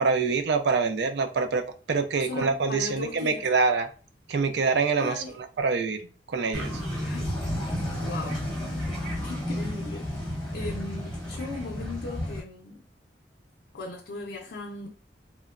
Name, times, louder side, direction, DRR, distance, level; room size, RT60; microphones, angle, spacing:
voice 1, 0.0-1.6 1.9-3.9 4.3-6.0 6.3-6.7, right 4 dB, 70° right, 0.4 m, -25 dB
voice 2, 2.2-3.4 5.0-5.4 7.0-7.4 7.8-8.5 9.2-10.1 10.5-12.8 13.7-14.9, left 3 dB, 65° left, 0.5 m, -37 dB
sound 1, 6.5-12.4, equal, 5° left, 0.9 m, -32 dB
3.0 x 2.1 x 2.4 m
head